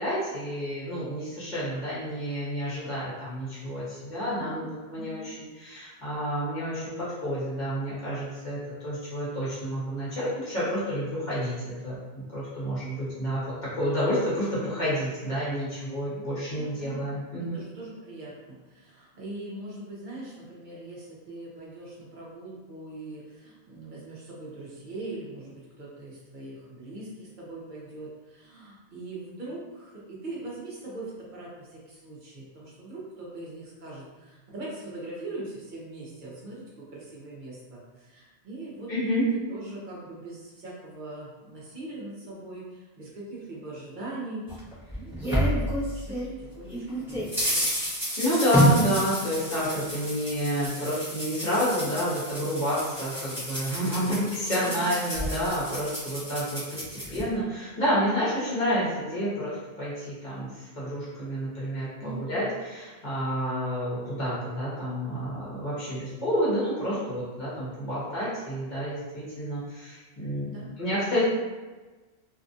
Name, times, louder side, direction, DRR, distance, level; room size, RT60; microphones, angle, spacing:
voice 1, 0.0-11.5 11.8-12.0 12.3-17.6 38.9-39.3 48.2-70.4 70.8-71.2, equal, 45° left, -9 dB, 1.2 m, -29 dB
voice 2, 4.3-4.7 4.9-5.3 16.1-16.3 16.5-17.1 17.4-44.7 45.0-45.6 45.8-47.7 53.9-55.0 62.0-62.4 70.4-70.7, right 2 dB, 50° right, -5 dB, 0.9 m, -41 dB
sound 1, 44.5-46.3 46.7-57.2, equal, ahead, 0.9 m, -29 dB
2.8 x 2.4 x 2.5 m, 1.3 s
omnidirectional pair, 1.1 m